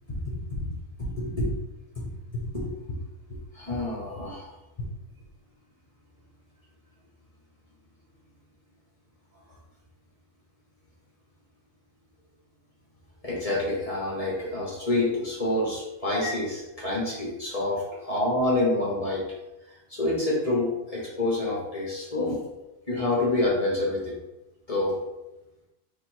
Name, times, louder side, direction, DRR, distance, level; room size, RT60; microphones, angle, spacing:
voice 1, 0.3-0.7 1.2-1.5 2.0-2.1 2.5-3.0 3.5-4.5 13.2-19.3 19.7-22.4 22.9-24.1 24.7-25.0, left 2 dB, 30° left, -4 dB, 0.7 m, -27 dB
3.7 x 2.6 x 4.4 m, 0.99 s
omnidirectional pair, 1.7 m